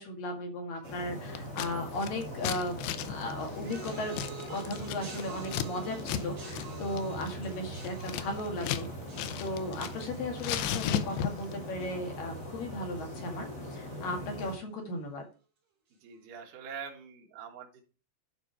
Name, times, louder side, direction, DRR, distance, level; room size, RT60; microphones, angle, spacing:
voice 1, 0.0-2.8 3.1-4.2 4.5-8.9 9.4-15.2, left 1 dB, 60° left, 2 dB, 3.4 m, -36 dB
sound 1, 0.8-14.5, equal, 20° left, 2.8 m, -41 dB
Scissors, 1.3-1.7 2.0-5.7 6.0-6.2 6.5-6.7 7.0-8.9 9.1-10.1 10.4-11.5, left 10 dB, 80° left, 2.8 m, -34 dB
sound 2, 3.5-12.9 13.1-13.7 14.5-14.6, right 5 dB, 40° right, 4.3 m, -49 dB
voice 2, 16.0-17.8, right 7 dB, 60° right, 0 dB, 2.9 m, -45 dB
12.0 x 5.0 x 4.6 m, 0.35 s
omnidirectional pair, 5.0 m